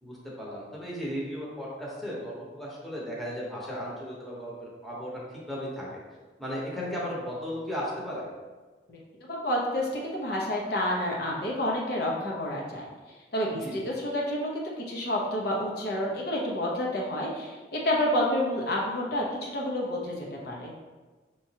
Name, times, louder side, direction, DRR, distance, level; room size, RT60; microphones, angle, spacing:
voice 1, 0.0-6.0 6.4-8.2 13.6-13.8, equal, ahead, -6 dB, 0.9 m, -35 dB
voice 2, 9.3-12.9 13.3-20.7, left 1 dB, 60° left, -3 dB, 0.8 m, -29 dB
5.7 x 3.0 x 2.8 m, 1.3 s
head